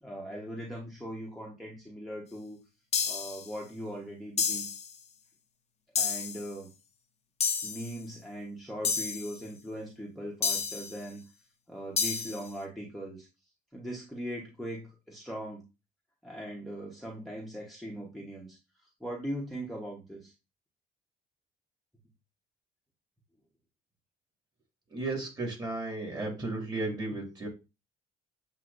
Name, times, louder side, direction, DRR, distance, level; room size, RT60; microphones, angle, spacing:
voice 1, 0.0-2.6 3.0-4.6 6.0-6.7 7.6-11.2 11.7-13.3 13.7-15.6 16.2-20.3, equal, ahead, -4 dB, 1.1 m, -40 dB
sound 1, 2.9-3.5 4.4-4.9 6.0-6.5 7.4-7.9 8.8-9.3 10.4-11.0 12.0-12.4, left 6 dB, 40° left, 0.8 m, -30 dB
voice 2, 24.9-27.5, right 2 dB, 25° right, 0 dB, 2.1 m, -34 dB
7.5 x 2.8 x 2.6 m, 0.28 s
cardioid pair, 110°, 17 cm